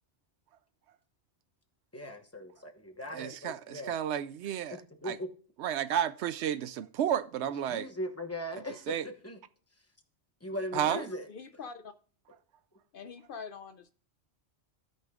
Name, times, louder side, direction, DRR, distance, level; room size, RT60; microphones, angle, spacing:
voice 1, 1.9-4.0 4.7-5.3 7.4-9.4 10.4-11.3, left 1 dB, 15° left, 1.0 m, -39 dB
voice 2, 3.1-4.8 5.0-5.2 5.6-7.9 8.9-9.1 10.7-11.0, right 10 dB, 75° right, 0.8 m, -32 dB
voice 3, 10.8-11.9 12.9-13.9, left 5 dB, 60° left, 0.6 m, -44 dB
16.5 x 5.5 x 2.4 m
omnidirectional pair, 1.2 m